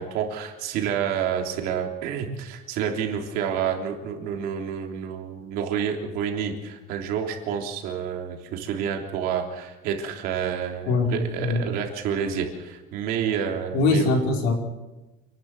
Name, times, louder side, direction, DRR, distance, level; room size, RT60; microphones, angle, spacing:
voice 1, 0.0-14.1, right 8 dB, 60° right, 2 dB, 3.4 m, -29 dB
voice 2, 10.9-11.6 13.7-14.5, left 3 dB, 70° left, 2 dB, 4.8 m, -22 dB
28.5 x 12.0 x 8.0 m, 1.1 s
cardioid pair, 175°, 18 cm